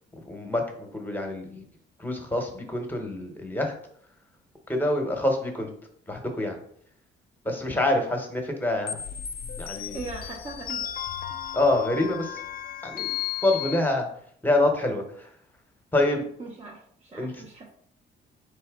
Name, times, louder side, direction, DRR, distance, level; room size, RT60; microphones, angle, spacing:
voice 1, 0.3-0.6 0.9-1.6 2.0-3.7 4.7-5.7 6.1-6.5 7.4-8.9 9.6-10.0 11.5-12.3 12.8-13.1 13.4-14.1 14.4-15.0 15.9-16.3 17.2-17.3, left 1 dB, 10° left, 3 dB, 1.0 m, -26 dB
sound 1, 8.9-13.8, left 10 dB, 50° left, 0.4 m, -34 dB
voice 2, 9.9-10.9 16.4-17.7, right 3 dB, 35° right, -1 dB, 0.8 m, -39 dB
4.2 x 3.4 x 3.6 m, 0.64 s
cardioid pair, 90°, 20 cm